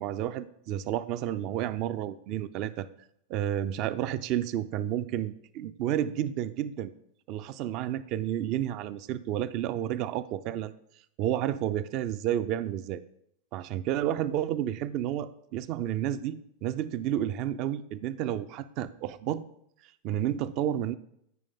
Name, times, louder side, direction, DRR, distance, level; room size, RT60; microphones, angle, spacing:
voice 1, 0.0-2.9 3.3-6.9 7.3-10.7 11.2-13.0 13.5-19.4 20.0-21.0, right 11 dB, 40° right, 15 dB, 0.4 m, -31 dB
13.0 x 5.1 x 3.7 m, 0.75 s
figure-of-eight pair, 90°, 0 cm